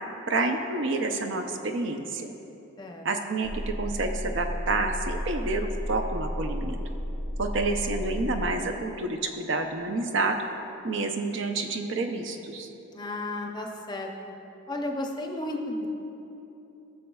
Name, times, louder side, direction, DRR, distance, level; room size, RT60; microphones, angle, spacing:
voice 1, 0.3-2.3 3.0-6.8 7.4-10.4 10.8-12.7, right 3 dB, 60° right, 5 dB, 0.6 m, -29 dB
sound 1, 3.4-8.6, equal, 30° right, 1.7 m, -33 dB
voice 2, 12.9-14.3 14.7-15.9, left 1 dB, 20° left, 2 dB, 0.6 m, -33 dB
19.0 x 6.5 x 2.3 m, 3.0 s
head